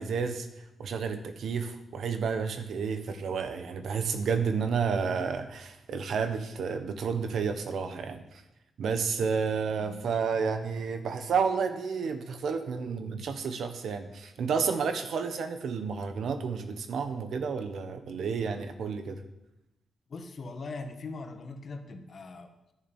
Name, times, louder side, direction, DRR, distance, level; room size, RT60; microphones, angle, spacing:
voice 1, 0.0-8.4 8.8-19.2, right 5 dB, 70° right, 8 dB, 1.3 m, -31 dB
voice 2, 20.1-22.7, left 3 dB, 55° left, 6 dB, 1.6 m, -41 dB
11.0 x 6.8 x 9.0 m, 0.92 s
cardioid pair, 70°, 0 cm